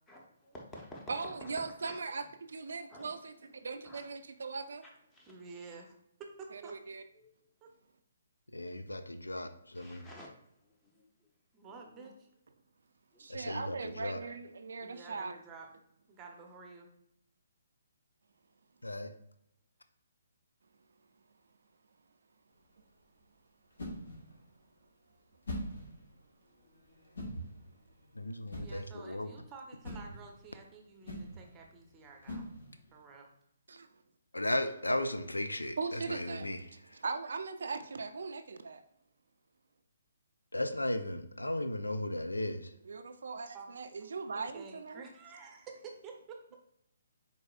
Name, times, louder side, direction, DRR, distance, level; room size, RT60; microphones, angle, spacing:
voice 1, 0.1-2.0 2.9-3.2 3.8-4.0 4.8-5.3 7.2-7.3 9.7-10.3 10.6-11.0 12.0-12.1 13.1-13.2, left 1 dB, 15° left, -2 dB, 1.0 m, -51 dB
voice 2, 1.1-3.3 3.6-4.8 6.5-7.0 13.2-15.4 33.7-33.9 35.8-36.5 37.0-38.8 42.8-45.0, right 4 dB, 65° right, 9 dB, 0.4 m, -39 dB
voice 3, 5.3-6.7 7.6-7.7 11.5-12.3 14.8-15.7 16.1-16.9 28.6-32.5 32.9-33.3 43.5-43.7 44.3-46.6, right 4 dB, 20° right, 2 dB, 0.8 m, -50 dB
voice 4, 8.5-10.1 13.3-14.2 18.8-19.1 28.2-29.3 34.3-36.6 40.5-42.7, left 1 dB, 85° left, 9 dB, 0.4 m, -35 dB
sound 1, 22.5-33.0, equal, 70° left, 1.5 m, -45 dB
4.6 x 4.0 x 2.4 m, 0.76 s
figure-of-eight pair, 135°, 0 cm